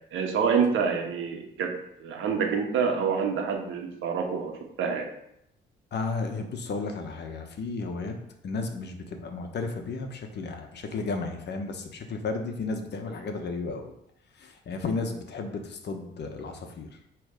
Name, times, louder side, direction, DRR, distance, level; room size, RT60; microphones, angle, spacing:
voice 1, 0.1-5.1, right 6 dB, 80° right, 2 dB, 1.4 m, -27 dB
voice 2, 5.9-8.1 8.4-13.9 14.4-16.9, left 3 dB, 60° left, 4 dB, 1.3 m, -33 dB
8.8 x 3.5 x 5.0 m, 0.79 s
cardioid pair, 90°, 20 cm